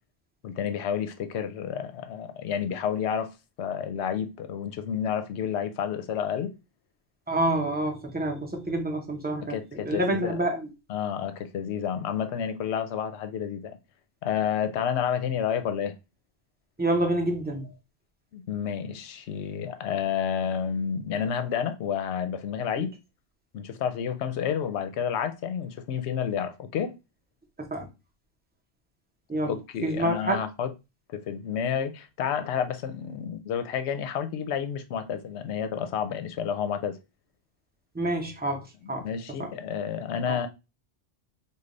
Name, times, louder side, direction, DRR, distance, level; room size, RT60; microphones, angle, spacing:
voice 1, 0.4-3.3 3.6-6.5 9.4-10.4 10.9-13.8 14.2-15.9 18.3-22.9 23.5-26.9 29.5-30.7 31.1-37.0 38.8-40.5, left 8 dB, 80° left, 0.8 m, -30 dB
voice 2, 7.3-10.7 16.8-17.7 22.8-22.9 27.6-27.9 29.3-29.5 29.8-30.4 37.9-39.1 39.4-39.5 40.3-40.4, right 1 dB, 10° right, 0.5 m, -28 dB
3.3 x 2.3 x 3.7 m
omnidirectional pair, 1.1 m